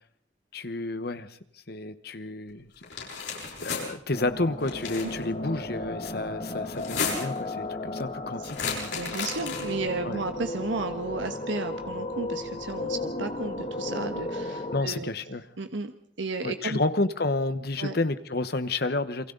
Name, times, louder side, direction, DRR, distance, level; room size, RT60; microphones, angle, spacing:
voice 1, 0.5-1.4 1.7-2.7 3.6-8.9 10.0-10.2 14.7-15.4 16.4-19.3, left 2 dB, 55° left, 12 dB, 1.2 m, -30 dB
sound 1, 2.8-3.8 4.6-5.2 6.7-7.4 8.5-9.8, left 5 dB, 80° left, 7.7 m, -33 dB
sound 2, 4.1-14.8, left 2 dB, 40° left, 2.2 m, -35 dB
voice 2, 8.9-15.1 15.6-16.8 17.8-17.9, right 3 dB, 90° right, 7 dB, 1.3 m, -33 dB
29.0 x 23.5 x 4.0 m, 0.63 s
head